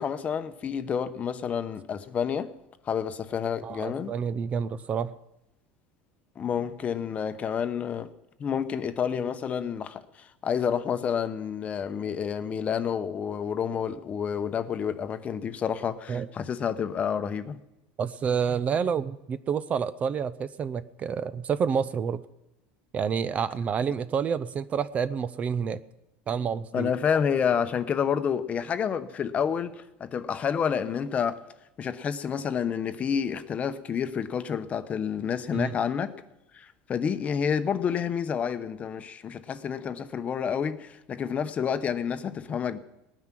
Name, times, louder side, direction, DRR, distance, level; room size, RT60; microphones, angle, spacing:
voice 1, 0.0-2.5 2.8-4.1 6.4-8.1 8.4-17.6 26.7-31.4 31.8-36.2 36.5-42.8, left 7 dB, 30° left, 0.9 m, -29 dB
voice 2, 3.6-5.1 16.1-16.3 18.0-22.2 22.9-25.8 26.3-26.9 35.5-35.7, right 7 dB, 30° right, 0.6 m, -28 dB
19.0 x 9.6 x 6.1 m
supercardioid pair, 135°, 5 cm